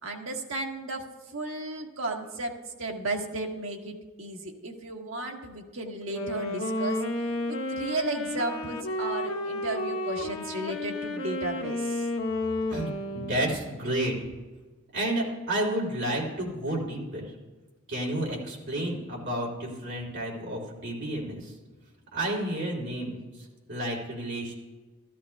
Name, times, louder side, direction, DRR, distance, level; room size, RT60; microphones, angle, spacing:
voice 1, 0.0-12.1, right 2 dB, 75° right, 1 dB, 1.4 m, -34 dB
Wind instrument woodwind instrument, 6.0-13.7, left 2 dB, 85° left, 0.9 m, -32 dB
voice 2, 13.1-14.1 14.9-17.3 17.9-21.5 22.1-24.5, right 1 dB, 55° right, -3 dB, 3.2 m, -31 dB
13.5 x 13.5 x 2.3 m, 1.2 s
head